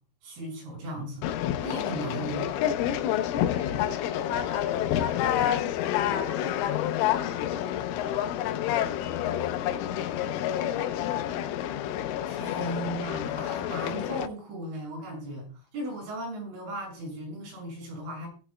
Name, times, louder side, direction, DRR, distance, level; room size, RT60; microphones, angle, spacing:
voice 1, 0.2-1.3 1.6-2.5 12.3-18.3, right 1 dB, 75° right, -1 dB, 8.5 m, -36 dB
Conversation, 1.2-14.3, left 11 dB, 85° left, 3.3 m, -28 dB
voice 2, 3.3-9.4 9.8-11.8, left 3 dB, 45° left, -3 dB, 1.2 m, -48 dB
18.5 x 8.4 x 2.2 m, 0.37 s
omnidirectional pair, 5.7 m